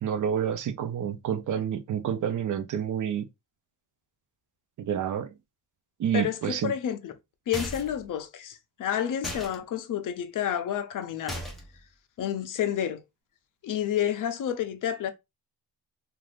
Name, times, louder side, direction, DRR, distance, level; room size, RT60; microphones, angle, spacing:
voice 1, 0.0-3.3 4.8-5.3 6.0-6.7, right 8 dB, 50° right, 0.5 m, -28 dB
voice 2, 6.1-7.1 7.5-11.4 12.2-13.0 13.6-15.1, left 9 dB, 50° left, 0.5 m, -30 dB
sound 1, 7.5-8.0 9.2-9.6 11.3-11.8, equal, ahead, 0.5 m, -36 dB
2.5 x 2.4 x 3.1 m
cardioid pair, 145°, 42 cm